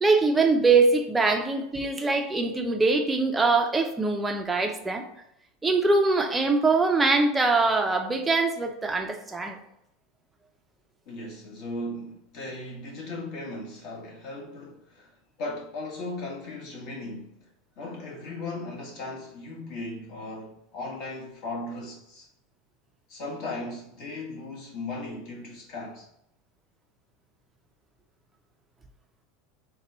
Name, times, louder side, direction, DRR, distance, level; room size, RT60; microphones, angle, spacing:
voice 1, 0.0-5.0 5.6-9.6, right 3 dB, 10° right, 0.5 m, -23 dB
voice 2, 11.0-15.1 15.4-17.3 17.8-22.3 23.1-26.1, left 2 dB, 50° left, 1.4 m, -37 dB
4.2 x 2.2 x 4.0 m
supercardioid pair, 150°, 0 cm